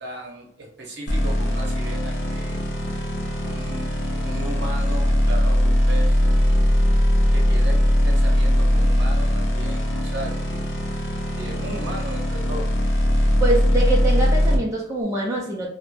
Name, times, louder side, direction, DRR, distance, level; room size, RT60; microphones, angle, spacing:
voice 1, 0.0-2.6 3.4-6.2 7.3-10.6 11.4-12.7, right 1 dB, 55° right, 0 dB, 0.8 m, -36 dB
sound 1, 1.1-14.6, equal, 60° left, 0.6 m, -20 dB
voice 2, 13.4-15.7, right 2 dB, 15° right, -3 dB, 0.4 m, -24 dB
2.3 x 2.0 x 3.1 m, 0.75 s
head